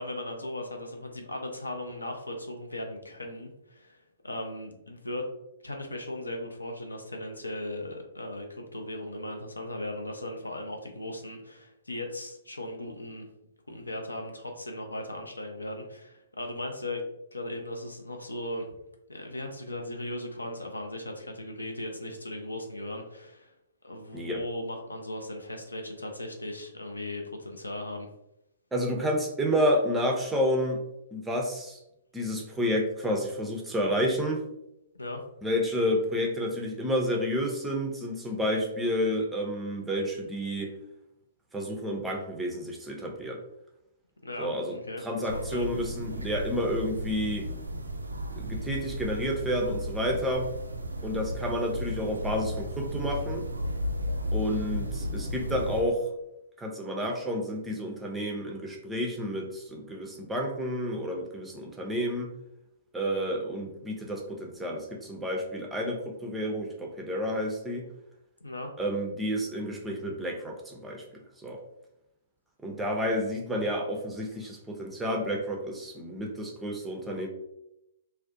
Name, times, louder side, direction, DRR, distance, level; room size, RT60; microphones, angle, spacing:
voice 1, 0.0-5.3 5.6-13.3 13.7-18.7 19.1-23.5 23.8-28.1 34.9-35.2 44.2-45.7 68.4-68.7, left 1 dB, 80° left, 3 dB, 0.4 m, -37 dB
voice 2, 28.7-30.8 31.1-31.8 32.1-34.4 35.4-40.7 41.5-43.4 44.4-44.8 45.0-47.5 48.4-50.5 51.0-53.4 54.3-56.0 56.6-62.3 62.9-67.9 68.8-71.0 71.4-71.6 72.6-77.3, equal, 10° right, 0 dB, 0.4 m, -30 dB
sound 1, 45.3-55.8, equal, 75° right, 0.3 m, -34 dB
2.4 x 2.0 x 2.5 m, 0.83 s
figure-of-eight pair, 115°, 0 cm